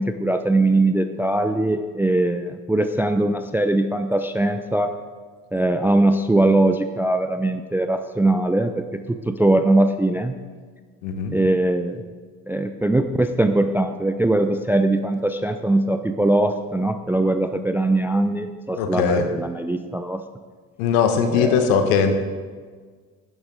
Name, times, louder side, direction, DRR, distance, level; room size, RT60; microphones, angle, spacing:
voice 1, 0.0-4.9 5.5-10.3 11.3-12.0 12.5-20.2 21.3-21.7, right 2 dB, 5° right, 9 dB, 0.4 m, -21 dB
voice 2, 11.0-11.4 18.8-19.3 20.8-22.2, left 6 dB, 65° left, 7 dB, 1.4 m, -20 dB
11.0 x 11.0 x 3.8 m, 1.5 s
figure-of-eight pair, 55°, 45 cm